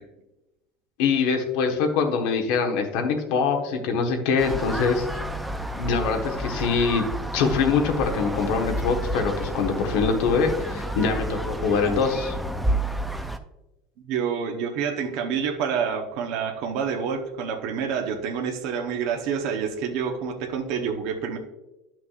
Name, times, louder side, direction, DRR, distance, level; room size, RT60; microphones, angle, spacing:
voice 1, 1.0-5.0 5.8-7.0 7.3-12.3, left 5 dB, 55° left, 4 dB, 1.1 m, -23 dB
sound 1, 4.4-13.4, right 1 dB, ahead, 0.3 m, -30 dB
voice 2, 14.0-21.4, right 7 dB, 50° right, 2 dB, 0.8 m, -28 dB
11.5 x 5.9 x 2.4 m, 1.0 s
cardioid pair, 180°, 0 cm